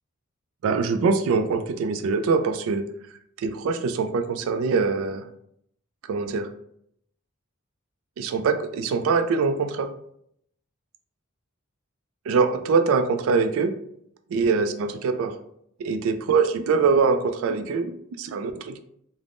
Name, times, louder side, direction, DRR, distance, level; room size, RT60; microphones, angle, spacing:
voice 1, 0.6-2.8 3.4-5.2 6.1-6.5 8.2-9.9 12.3-13.7 14.3-15.3 15.8-18.8, right 4 dB, 75° right, 8 dB, 0.3 m, -23 dB
3.4 x 2.0 x 2.5 m, 0.72 s
head